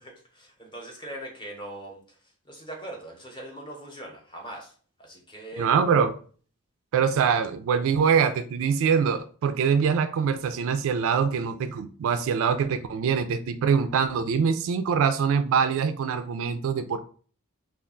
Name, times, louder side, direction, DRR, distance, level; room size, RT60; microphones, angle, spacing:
voice 1, 0.0-2.0 2.5-4.7 5.0-5.7, right 1 dB, 20° left, 0.8 m, -41 dB
voice 2, 5.6-6.1 6.9-17.0, right 6 dB, 65° right, 0.3 m, -24 dB
2.3 x 2.2 x 3.7 m
head